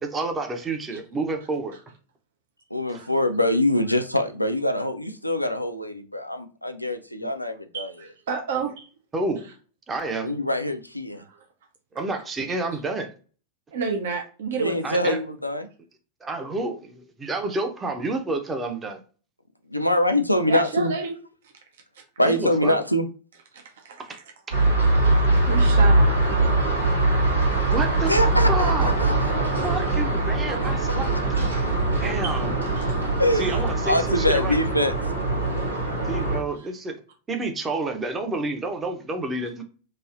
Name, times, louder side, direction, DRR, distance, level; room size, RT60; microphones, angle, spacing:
voice 1, 0.1-1.8 7.2-7.3 9.1-9.5 9.9-10.3 11.9-13.1 14.8-15.2 16.2-19.0 22.2-22.8 27.7-28.1 28.5-28.9 29.6-31.2 32.0-32.5 33.3-34.5 36.1-37.0 37.3-39.6, right 2 dB, 20° right, 0.6 m, -29 dB
voice 2, 2.7-7.9 10.2-11.2 14.5-15.7 19.7-20.9 22.2-23.0 28.1-29.5 30.9-31.0 33.2-34.9, left 1 dB, 90° left, 0.4 m, -24 dB
voice 3, 7.7-8.9 11.2-11.4 13.7-14.9 20.5-21.1 23.5-24.2 25.4-27.0 32.2-32.4 32.8-33.0 36.6-36.7, right 5 dB, 60° right, 0.6 m, -31 dB
sound 1, 24.5-36.4, right 2 dB, 85° right, 1.2 m, -22 dB
3.1 x 2.6 x 2.4 m
figure-of-eight pair, 90°, 0 cm